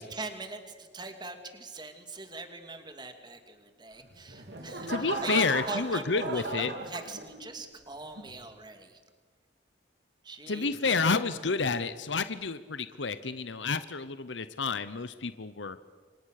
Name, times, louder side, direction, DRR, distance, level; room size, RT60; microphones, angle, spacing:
voice 1, 0.0-9.0 10.2-10.9, right 3 dB, 25° right, 6 dB, 2.6 m, -42 dB
sound 1, 4.0-7.6 8.2-8.5, right 3 dB, 65° right, 3.5 m, -37 dB
voice 2, 4.9-6.7 10.5-15.8, left 4 dB, 85° left, 13 dB, 0.9 m, -30 dB
29.0 x 25.0 x 6.7 m, 1.4 s
head